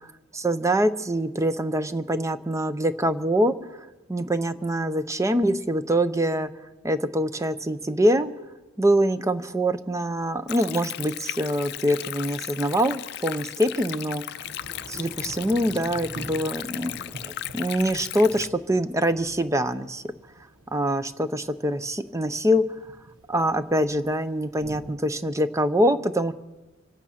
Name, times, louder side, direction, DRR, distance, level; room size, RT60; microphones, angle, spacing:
voice 1, 0.3-3.6 4.1-6.5 6.8-8.3 8.8-14.4 14.9-17.0 17.2-20.0 20.7-22.6 23.3-26.3, equal, 15° right, 12 dB, 0.6 m, -24 dB
Thunder / Rain, 10.2-10.3 13.2-25.0, right 1 dB, 80° right, 1.3 m, -46 dB
Stream, 10.5-18.5, left 12 dB, 55° left, 0.4 m, -36 dB
25.5 x 8.7 x 5.8 m, 1.1 s
head